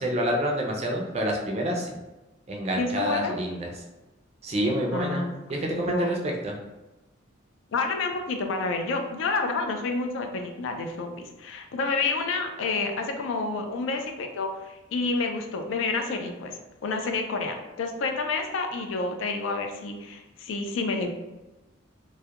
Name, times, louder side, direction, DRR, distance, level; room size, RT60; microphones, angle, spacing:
voice 1, 0.0-2.0 2.5-3.7 4.4-5.2 5.5-6.2 6.4-6.5, equal, 30° right, 0 dB, 0.4 m, -27 dB
voice 2, 2.8-3.3 4.9-6.1 7.7-21.1, left 3 dB, 70° left, 4 dB, 0.3 m, -29 dB
2.3 x 2.1 x 2.8 m, 1.0 s
head